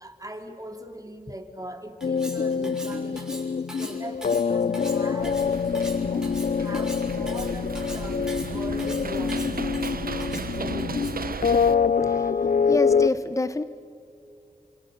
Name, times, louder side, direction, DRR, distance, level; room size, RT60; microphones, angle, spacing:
voice 1, 0.0-3.4 3.8-10.2 10.5-11.2, right 1 dB, 25° right, 4 dB, 3.2 m, -40 dB
sound 1, 2.0-13.1, left 6 dB, 60° left, 0.5 m, -25 dB
Cutlery silverware, 2.0-11.3, right 1 dB, 5° right, 6.9 m, -41 dB
sound 2, 5.2-11.7, right 5 dB, 80° right, 1.0 m, -35 dB
voice 2, 12.7-13.6, left 2 dB, 20° left, 13 dB, 0.8 m, -27 dB
29.0 x 26.0 x 6.7 m, 2.4 s
wide cardioid pair, 65°, 15 cm